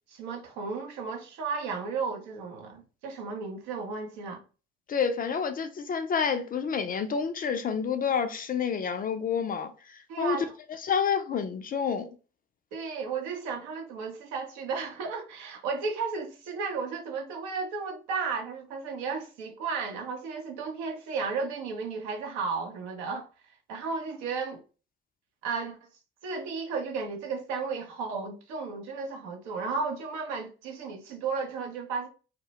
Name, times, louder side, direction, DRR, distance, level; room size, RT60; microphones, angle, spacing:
voice 1, 0.1-4.4 10.1-10.6 12.7-23.3 23.7-24.6 25.4-25.8 26.2-32.1, right 5 dB, 70° right, 0.6 m, -34 dB
voice 2, 4.9-10.4 10.8-12.1, left 6 dB, 30° left, 0.4 m, -29 dB
2.1 x 2.1 x 2.8 m
hypercardioid pair, 50°, 29 cm